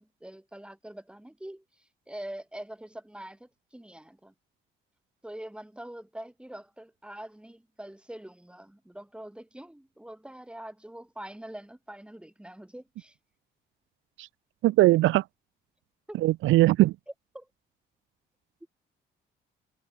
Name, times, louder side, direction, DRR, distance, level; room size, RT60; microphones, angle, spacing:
voice 1, 0.0-1.6 2.1-4.3 5.2-13.1 16.1-16.2 17.3-17.5, right 1 dB, 5° right, 2.9 m, -44 dB
voice 2, 14.6-15.2 16.2-16.9, right 17 dB, 85° right, 0.6 m, -20 dB
cardioid pair, 90°, 20 cm